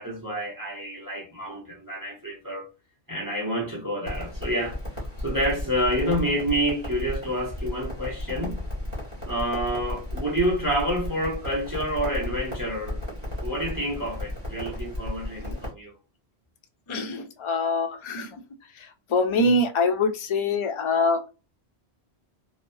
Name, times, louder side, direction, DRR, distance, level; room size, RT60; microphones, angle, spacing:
voice 1, 0.0-2.7 3.1-8.6 9.2-13.0 13.4-15.9, equal, 20° right, 0.9 m, -28 dB
Crackle, 4.0-15.7, left 1 dB, 35° right, 1.3 m, -34 dB
voice 2, 16.9-18.3 19.1-21.3, left 2 dB, 50° left, 0.3 m, -24 dB
3.0 x 2.1 x 2.6 m
omnidirectional pair, 1.1 m